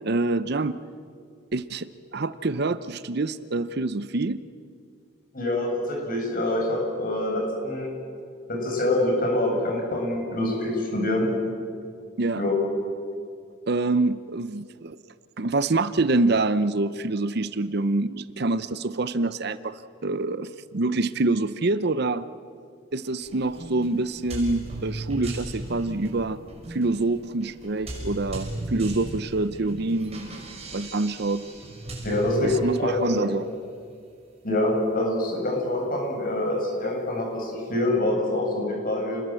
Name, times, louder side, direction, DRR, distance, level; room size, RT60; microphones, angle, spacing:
voice 1, 0.0-0.8 1.5-4.4 12.2-12.4 13.1-13.2 13.7-15.0 15.4-22.3 22.9-26.4 26.7-30.3 30.7-31.4 32.4-33.5, right 2 dB, 55° right, 14 dB, 0.7 m, -26 dB
voice 2, 5.3-7.9 8.5-11.3 12.3-12.5 32.0-33.3 34.4-39.2, left 1 dB, 45° left, -1 dB, 8.0 m, -25 dB
sound 1, 23.2-33.1, right 1 dB, 30° right, 6.3 m, -37 dB
30.0 x 21.0 x 7.7 m, 2.3 s
head